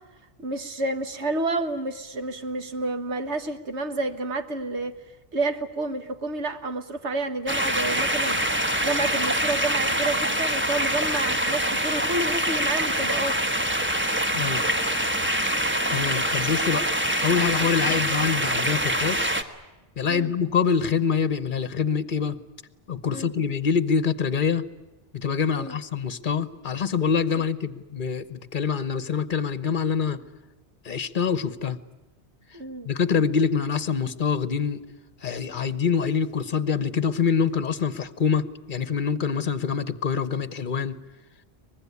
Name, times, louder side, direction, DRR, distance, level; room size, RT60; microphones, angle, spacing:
voice 1, 0.4-4.9 5.3-8.4 8.8-13.5 17.9-18.0 20.1-20.3 23.1-23.3 25.5-25.8 27.4-27.5 32.5-32.9, right 2 dB, 80° right, 8 dB, 1.7 m, -29 dB
sound 1, 7.5-19.4, equal, 10° right, 1.2 m, -25 dB
voice 2, 14.3-14.7 15.9-16.9 17.2-19.3 20.0-22.4 22.9-24.6 25.1-30.2 30.8-31.8 32.8-34.8 35.2-41.0, left 6 dB, 50° left, 14 dB, 1.1 m, -25 dB
23.5 x 20.5 x 9.7 m, 1.1 s
omnidirectional pair, 1.1 m